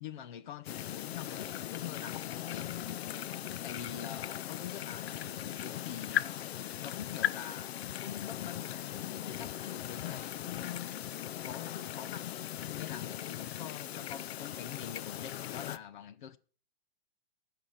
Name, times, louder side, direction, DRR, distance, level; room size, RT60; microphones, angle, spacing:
voice 1, 0.0-2.8 3.6-6.4 6.8-7.7 8.0-10.9 11.4-16.4, left 9 dB, 50° left, 0.8 m, -45 dB
sound 1, 0.7-15.8, left 11 dB, 80° left, 0.6 m, -38 dB
15.5 x 5.8 x 6.5 m
hypercardioid pair, 165°, 31 cm